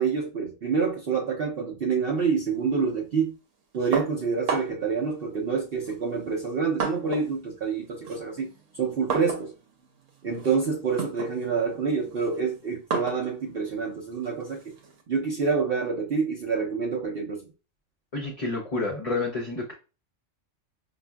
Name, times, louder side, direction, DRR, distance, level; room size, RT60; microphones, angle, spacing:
voice 1, 0.0-3.3 3.7-8.5 8.8-9.5 10.2-14.7 15.1-17.5, right 5 dB, 55° right, 0.8 m, -27 dB
sound 1, 3.9-4.9 5.8-7.4 7.7-15.0, right 5 dB, 85° right, 1.1 m, -34 dB
voice 2, 18.1-19.7, left 3 dB, 35° left, 0.6 m, -29 dB
5.2 x 2.5 x 2.3 m
omnidirectional pair, 1.3 m